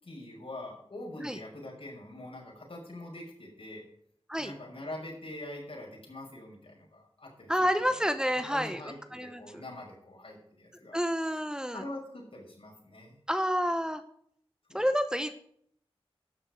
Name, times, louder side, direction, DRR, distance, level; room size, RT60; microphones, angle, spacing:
voice 1, 0.0-3.8 4.4-7.9 8.3-11.0 11.7-13.2 14.7-14.8, left 1 dB, 65° left, -2 dB, 5.8 m, -44 dB
voice 2, 7.5-9.4 10.9-11.8 13.3-14.0 14.7-15.3, equal, 5° right, 9 dB, 0.8 m, -29 dB
12.0 x 6.9 x 7.6 m, 0.67 s
wide cardioid pair, 50°, 10 cm